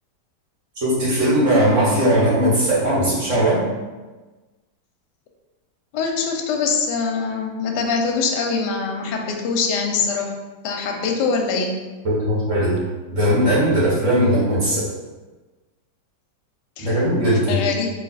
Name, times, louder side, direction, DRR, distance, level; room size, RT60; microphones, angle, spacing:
voice 1, 0.8-3.6 12.0-12.8 13.1-14.9 16.8-17.6, equal, 45° right, -8 dB, 1.4 m, -18 dB
voice 2, 5.9-10.3 10.6-11.7 16.8-16.9 17.5-17.9, left 5 dB, 75° left, 2 dB, 1.1 m, -23 dB
3.2 x 2.7 x 4.0 m, 1.2 s
omnidirectional pair, 2.0 m